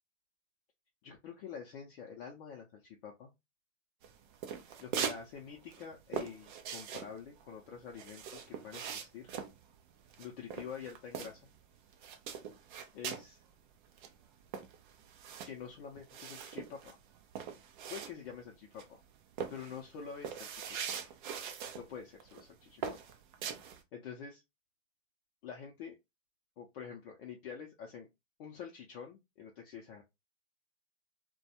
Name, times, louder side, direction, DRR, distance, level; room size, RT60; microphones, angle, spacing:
voice 1, 1.0-3.3 4.8-9.3 10.2-11.4 12.9-13.4 15.5-17.0 17.9-19.0 19.5-20.8 21.0-21.1 21.7-23.0 23.9-24.4 25.4-25.9 26.6-28.1 28.4-30.0, left 7 dB, 45° left, 0 dB, 0.6 m, -47 dB
sound 1, 4.0-5.2 5.5-11.6 11.9-13.3 13.7-13.8 14.0-18.5 18.8-19.0 19.4-21.8 22.2-22.4 22.8-23.8, right 7 dB, 40° right, 0.5 m, -41 dB
2.2 x 2.2 x 2.7 m, 0.21 s
hypercardioid pair, 125°, 37 cm